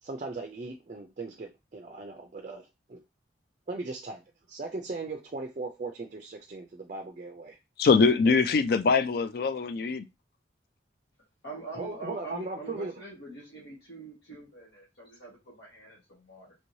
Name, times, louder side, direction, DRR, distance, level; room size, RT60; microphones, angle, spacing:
voice 1, 0.0-3.0 3.7-4.2 4.5-7.6 11.7-12.9, right 3 dB, 40° right, 0.4 m, -38 dB
voice 2, 7.8-10.0, left 4 dB, 55° left, 0.3 m, -23 dB
voice 3, 11.4-16.5, right 3 dB, 90° left, 1.3 m, -44 dB
3.1 x 3.1 x 2.7 m
head